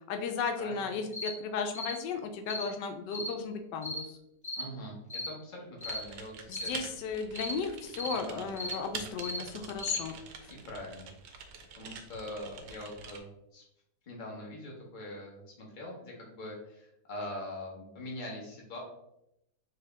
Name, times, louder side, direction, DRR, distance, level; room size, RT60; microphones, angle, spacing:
voice 1, 0.1-4.2 6.5-10.1 10.4-10.5, left 5 dB, 85° left, 6 dB, 1.2 m, -35 dB
sound 1, 1.1-1.3 1.7-1.9 2.5-2.7 3.1-3.3 3.8-4.0 4.4-4.7 5.1-5.3 5.8-6.0 6.5-6.7 7.3-7.6 8.0-8.2 8.6-8.8 9.2-9.4 9.8-10.0, left 1 dB, 15° left, 0.9 m, -37 dB
voice 2, 4.6-6.7 8.1-8.5 10.5-11.4 11.7-13.6 14.0-18.8, left 1 dB, 30° left, -2 dB, 1.1 m, -43 dB
Typing, 5.8-13.2, right 5 dB, 80° right, 1.3 m, -46 dB
4.8 x 2.8 x 3.4 m, 0.82 s
omnidirectional pair, 1.8 m